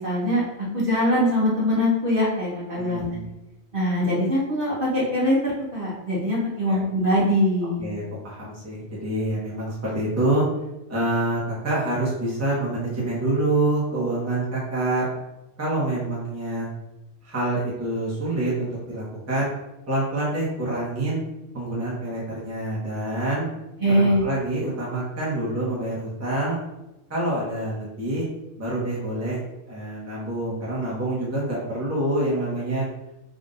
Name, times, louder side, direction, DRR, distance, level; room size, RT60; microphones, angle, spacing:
voice 1, 0.0-3.1 3.7-7.9 23.8-24.2, equal, 45° right, -6 dB, 1.3 m, -22 dB
voice 2, 2.8-3.2 6.7-6.8 7.8-10.4 10.9-15.1 15.6-16.7 17.2-19.5 19.9-21.2 21.5-23.5 23.9-26.6 27.1-28.2 28.6-32.9, right 1 dB, 15° right, -7 dB, 1.0 m, -26 dB
3.8 x 2.5 x 3.8 m, 0.95 s
omnidirectional pair, 1.3 m